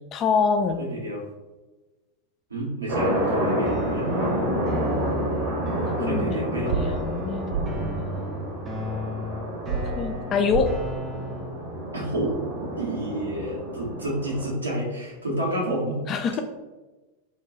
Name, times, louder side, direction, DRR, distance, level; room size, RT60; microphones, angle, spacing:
voice 1, 0.1-0.8 6.0-8.2 10.0-10.7 16.1-16.4, left 5 dB, 30° left, 7 dB, 0.3 m, -26 dB
voice 2, 0.8-1.2 2.5-4.2 6.0-6.9 11.9-16.1, right 1 dB, 75° right, -5 dB, 0.9 m, -29 dB
sound 1, 2.9-14.5, equal, 45° right, 0.9 m, -29 dB
sound 2, 3.6-11.6, equal, 20° right, 0.6 m, -35 dB
sound 3, 6.7-6.8 7.5-7.7 9.7-9.8 10.5-10.7, right 8 dB, 60° right, 0.3 m, -26 dB
2.3 x 2.2 x 3.7 m, 1.2 s
figure-of-eight pair, 90°, 0 cm